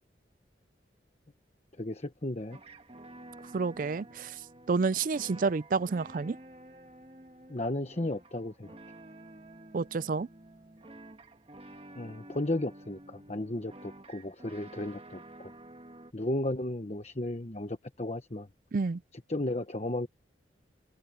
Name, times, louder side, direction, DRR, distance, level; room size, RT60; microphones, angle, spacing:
voice 1, 1.8-2.6 7.5-8.8 11.9-15.5 16.1-18.5 19.1-20.1, left 1 dB, 35° left, 1.1 m, -34 dB
sound 1, 2.5-16.1, right 1 dB, 35° right, 1.5 m, -51 dB
voice 2, 3.5-4.3 4.7-6.4 9.7-10.3 18.7-19.0, right 4 dB, 50° right, 0.4 m, -29 dB
head